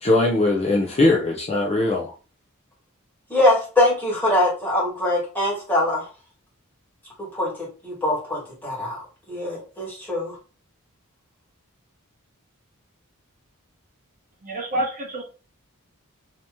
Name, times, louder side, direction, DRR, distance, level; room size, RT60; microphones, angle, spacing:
voice 1, 0.0-2.1, left 2 dB, 30° left, 0.5 m, -20 dB
voice 2, 3.3-6.1 7.3-7.5 7.8-10.3, left 1 dB, 10° left, 1.6 m, -23 dB
voice 3, 14.4-15.2, right 1 dB, 40° right, 0.8 m, -27 dB
2.8 x 2.8 x 3.4 m
head